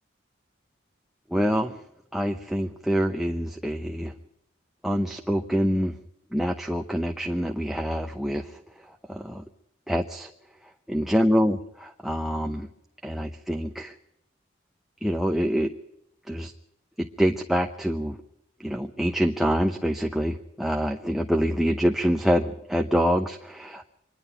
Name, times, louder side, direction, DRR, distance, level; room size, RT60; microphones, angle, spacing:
voice 1, 1.3-1.8 2.1-4.1 4.8-5.9 6.3-8.6 9.1-9.4 9.9-10.3 10.9-12.7 13.0-13.9 15.0-15.7 16.3-16.5 17.0-18.2 18.6-23.9, equal, ahead, 4 dB, 0.7 m, -26 dB
25.0 x 11.0 x 9.9 m, 0.83 s
head